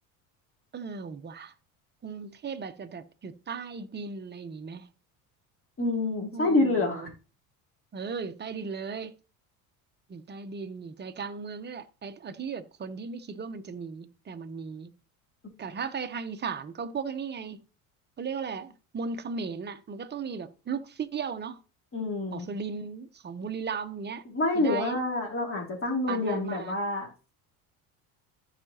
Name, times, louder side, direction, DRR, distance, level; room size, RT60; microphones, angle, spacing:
voice 1, 0.7-1.5 2.0-4.9 6.3-7.1 7.9-9.1 10.1-14.9 15.6-17.6 18.2-21.6 22.3-24.2 24.5-25.0 26.1-26.8, right 5 dB, 25° right, 0.9 m, -36 dB
voice 2, 5.8-7.1 21.9-22.5 24.2-27.1, left 2 dB, 30° left, 3.3 m, -27 dB
15.0 x 5.0 x 2.8 m
hypercardioid pair, 80°, 43 cm